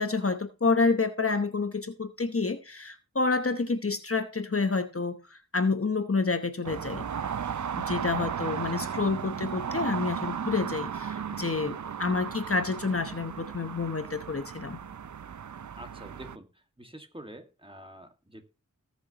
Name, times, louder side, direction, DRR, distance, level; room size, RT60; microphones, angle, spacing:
voice 1, 0.0-7.1 7.7-14.8, left 4 dB, 45° left, 1.0 m, -29 dB
sound 1, 6.6-16.4, right 7 dB, 65° right, 0.5 m, -35 dB
voice 2, 15.8-16.5 16.8-18.4, right 1 dB, 15° right, 1.9 m, -46 dB
19.0 x 6.6 x 3.0 m
wide cardioid pair, 50°, 32 cm